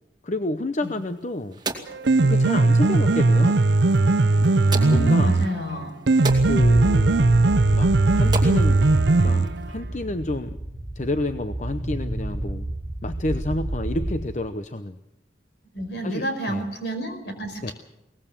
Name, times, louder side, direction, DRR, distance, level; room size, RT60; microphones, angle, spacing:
voice 1, 0.2-1.6 2.2-3.6 4.9-5.4 6.5-8.9 9.2-10.6 11.0-12.7 13.0-15.0 16.0-16.6 17.6-17.7, left 1 dB, 40° left, 9 dB, 0.8 m, -29 dB
sound 1, 0.8-9.8, right 3 dB, 25° right, 2.3 m, -38 dB
Piano, 1.9-9.9, right 2 dB, 65° right, 0.7 m, -19 dB
voice 2, 4.7-5.9 15.7-17.7, right 1 dB, 65° left, 6 dB, 5.0 m, -30 dB
sound 2, 6.3-14.2, right 1 dB, 5° left, 4.6 m, -30 dB
22.5 x 19.0 x 7.4 m, 0.91 s
head